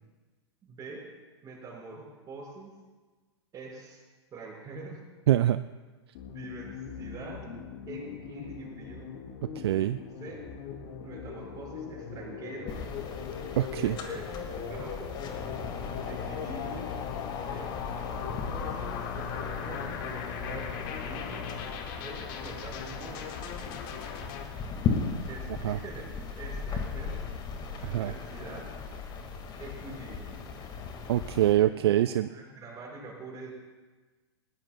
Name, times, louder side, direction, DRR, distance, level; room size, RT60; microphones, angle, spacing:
voice 1, 0.6-1.1 1.4-2.7 3.5-4.0 4.3-5.0 6.3-7.4 7.9-9.1 10.2-10.4 11.0-12.8 13.7-15.1 16.0-16.9 17.4-21.5 22.0-23.9 25.3-26.1 26.4-27.2 27.9-28.7 29.6-30.4 31.7-33.5, right 3 dB, 25° right, -2 dB, 5.3 m, -44 dB
voice 2, 5.3-5.6 9.6-10.0 13.6-14.0 25.6-25.8 27.8-28.1 31.1-32.3, right 13 dB, 60° right, 12 dB, 0.4 m, -24 dB
sound 1, 6.1-24.4, left 7 dB, 50° left, 1.7 m, -40 dB
sound 2, 12.7-31.5, left 5 dB, 30° left, 1.9 m, -37 dB
20.0 x 17.5 x 2.3 m, 1.3 s
hypercardioid pair, 105°, 15 cm